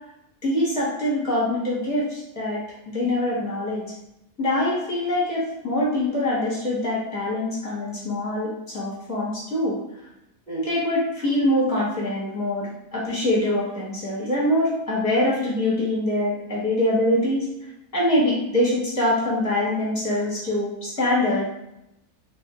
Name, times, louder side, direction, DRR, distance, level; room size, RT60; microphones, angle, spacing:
voice 1, 0.4-2.6 2.9-3.8 4.4-9.8 10.5-17.5 17.9-21.5, left 1 dB, 15° left, -6 dB, 0.8 m, -24 dB
3.2 x 3.0 x 2.9 m, 0.83 s
omnidirectional pair, 1.6 m